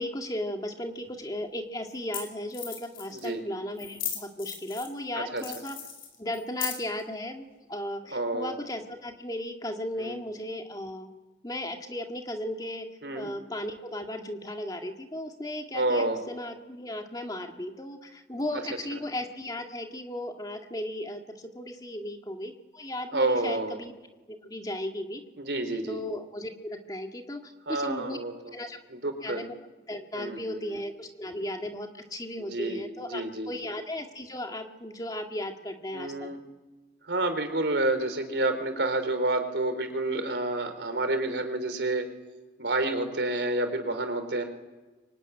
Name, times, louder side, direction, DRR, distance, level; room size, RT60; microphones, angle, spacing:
voice 1, 0.0-5.8 6.2-11.1 11.4-12.9 13.1-23.9 24.3-25.2 25.9-28.2 28.5-28.8 29.2-29.5 29.9-36.3, left 1 dB, 20° left, 4 dB, 2.0 m, -36 dB
sound 1, 1.0-1.1 1.9-2.0 2.1-2.2 2.5-3.3 3.8-5.0 5.4-7.0, left 9 dB, 55° left, 6.0 m, -36 dB
voice 2, 8.1-8.5 10.0-10.1 13.0-13.3 15.7-16.2 23.1-23.8 25.4-26.0 27.7-28.3 28.9-29.4 30.1-30.8 32.4-32.8 33.1-33.6 35.9-36.4 37.1-42.0 42.6-44.4, right 2 dB, 90° right, 7 dB, 4.0 m, -29 dB
24.5 x 23.5 x 9.8 m, 1.2 s
head